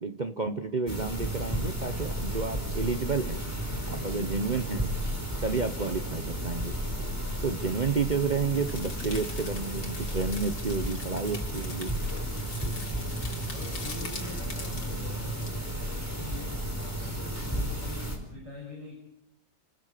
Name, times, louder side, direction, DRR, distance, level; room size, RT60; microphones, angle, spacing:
voice 1, 0.0-3.4 3.9-4.9 5.4-6.8 7.4-11.9, right 4 dB, 35° right, 7 dB, 0.8 m, -30 dB
sound 1, 0.9-18.2, equal, 10° right, 4.9 m, -33 dB
sound 2, 8.5-15.5, left 3 dB, 85° left, 3.9 m, -44 dB
voice 2, 13.5-19.0, left 2 dB, 80° right, -1 dB, 7.6 m, -45 dB
29.5 x 19.5 x 6.7 m, 0.79 s
omnidirectional pair, 1.9 m